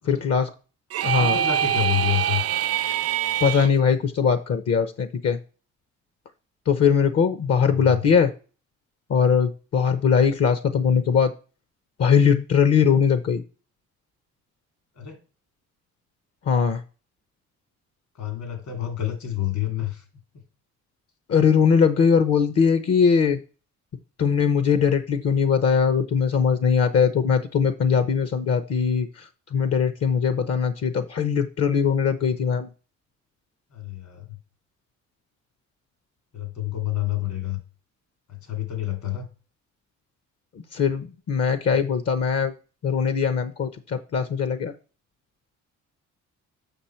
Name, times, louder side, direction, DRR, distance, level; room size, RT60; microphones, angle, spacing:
voice 1, 0.1-0.5 1.0-1.4 3.4-5.4 6.7-8.3 9.1-11.3 12.0-13.4 16.5-16.8 21.3-23.4 24.2-29.2 29.5-32.7 40.7-42.5 42.8-44.7, left 6 dB, 55° left, 11 dB, 0.8 m, -21 dB
sound 1, 0.9-3.7, right 11 dB, 55° right, 0.4 m, -24 dB
voice 2, 1.1-2.4 7.6-8.1 14.9-15.2 18.2-20.0 33.7-34.4 36.3-37.6 38.3-39.3, left 12 dB, 70° left, 6 dB, 2.5 m, -29 dB
7.1 x 6.1 x 4.4 m, 0.36 s
cardioid pair, 90°, 30 cm